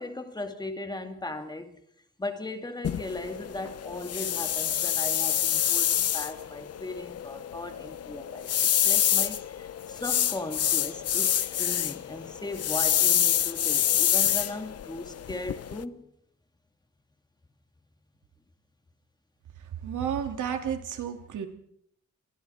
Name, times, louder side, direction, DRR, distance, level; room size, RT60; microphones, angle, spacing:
voice 1, 0.0-1.8 2.2-16.1, left 2 dB, 15° left, 2.1 m, -38 dB
sound 1, 2.8-15.8, left 10 dB, 55° left, 0.8 m, -27 dB
voice 2, 19.8-21.5, right 8 dB, 85° right, 2.9 m, -31 dB
29.5 x 23.0 x 4.4 m
wide cardioid pair, 155°, 29 cm